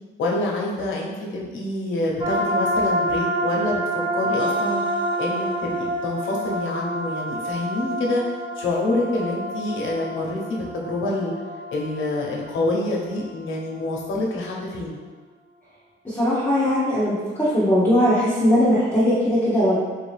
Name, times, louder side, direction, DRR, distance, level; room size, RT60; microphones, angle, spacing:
voice 1, 0.2-3.8 4.1-4.8 5.2-8.2 8.6-11.3 11.7-15.0, left 2 dB, 80° left, -2 dB, 0.9 m, -26 dB
sound 1, 2.2-13.6, right 1 dB, 25° right, 0.6 m, -27 dB
voice 2, 16.0-19.8, equal, 10° left, -10 dB, 0.9 m, -19 dB
3.8 x 2.7 x 3.3 m, 1.4 s
cardioid pair, 90°, 20 cm